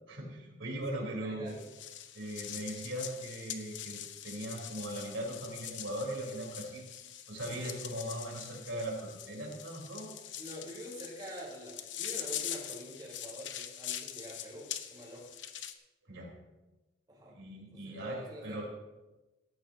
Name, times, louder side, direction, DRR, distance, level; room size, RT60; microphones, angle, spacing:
voice 1, 0.1-1.5 2.1-6.8 7.3-10.1 16.1-16.3 17.3-18.7, right 1 dB, 90° right, -2 dB, 4.3 m, -39 dB
voice 2, 0.9-1.6 7.5-7.7 10.4-15.3 17.1-17.4 17.7-18.7, equal, 20° right, -5 dB, 4.2 m, -46 dB
sound 1, 1.5-15.7, left 10 dB, 70° left, 0.9 m, -43 dB
17.0 x 14.5 x 2.9 m, 1.1 s
head